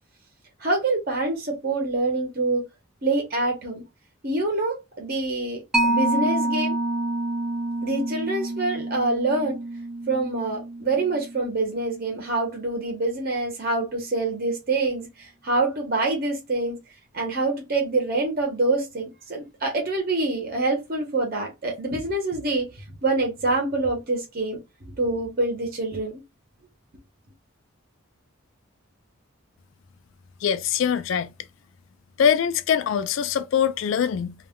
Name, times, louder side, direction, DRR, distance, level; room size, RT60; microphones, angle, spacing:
voice 1, 0.6-2.6 3.0-3.8 4.2-6.7 7.8-9.6 10.1-16.8 17.1-22.7 23.0-24.6 25.0-26.2, right 2 dB, 45° right, 0.8 m, -26 dB
Mallet percussion, 5.7-12.8, right 2 dB, ahead, 0.4 m, -28 dB
voice 2, 30.4-31.3 32.2-34.3, left 8 dB, 65° left, 0.3 m, -23 dB
2.2 x 2.1 x 3.5 m
head